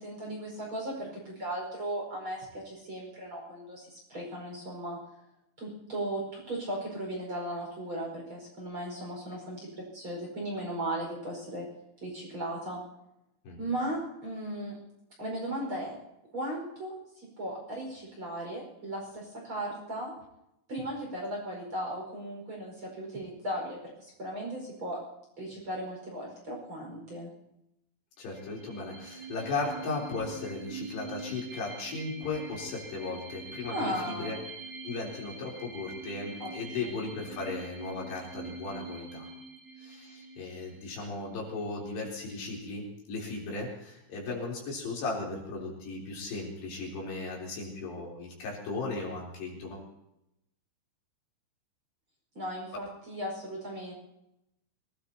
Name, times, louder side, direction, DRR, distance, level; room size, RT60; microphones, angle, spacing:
voice 1, 0.0-5.0 5.6-11.7 12.0-12.8 13.6-14.8 15.2-15.9 16.3-20.1 20.7-25.0 25.4-27.3 33.7-34.4 36.4-36.9 52.3-53.9, right 1 dB, 25° right, -2 dB, 5.6 m, -37 dB
voice 2, 28.2-34.4 34.8-39.3 39.8-49.8, left 3 dB, 65° left, -3 dB, 5.7 m, -36 dB
sound 1, 28.3-41.6, right 3 dB, 45° right, 1.7 m, -44 dB
26.0 x 18.5 x 2.9 m, 0.84 s
omnidirectional pair, 5.4 m